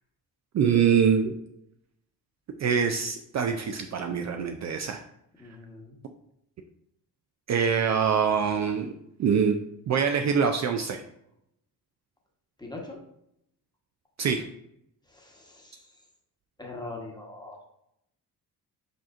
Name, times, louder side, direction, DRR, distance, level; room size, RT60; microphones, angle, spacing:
voice 1, 0.5-1.4 2.6-5.0 7.5-8.9 9.2-9.6 9.9-11.0 14.2-14.4, right 7 dB, 45° right, 5 dB, 0.4 m, -24 dB
voice 2, 5.4-6.0 12.6-13.0 15.1-15.9 16.6-17.6, left 2 dB, 10° left, 0 dB, 1.1 m, -42 dB
5.1 x 4.2 x 2.5 m, 0.77 s
cardioid pair, 85°, 39 cm